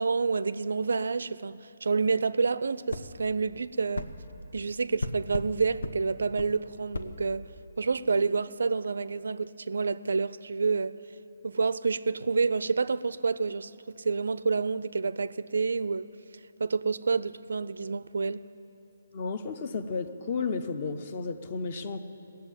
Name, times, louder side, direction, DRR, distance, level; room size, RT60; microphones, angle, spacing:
voice 1, 0.0-4.1 4.5-7.5 7.8-11.0 11.4-13.7 14.0-16.1 16.6-18.4, right 4 dB, 75° right, 0.4 m, -28 dB
sound 1, 2.9-3.1 3.9-4.1 5.0-5.5 5.8-6.0 6.4-6.5 6.9-7.1, left 2 dB, 90° left, 0.9 m, -33 dB
voice 2, 19.1-22.0, left 4 dB, 30° left, 0.6 m, -33 dB
17.5 x 7.5 x 9.0 m
hypercardioid pair, 175°, 0 cm